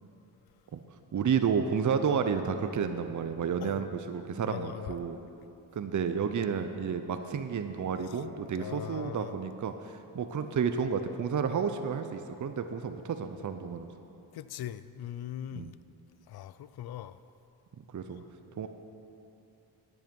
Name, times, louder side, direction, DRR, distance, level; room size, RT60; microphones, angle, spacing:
voice 1, 1.1-5.2 5.8-13.9 15.5-15.7 17.8-18.2 18.6-18.7, right 6 dB, 45° right, 8 dB, 0.6 m, -31 dB
voice 2, 4.5-5.0 8.1-8.2 8.6-9.3 14.3-15.8 16.3-17.2 18.2-18.3, left 11 dB, 65° left, 15 dB, 0.5 m, -40 dB
10.5 x 9.5 x 5.3 m, 2.8 s
cardioid pair, 60°, 42 cm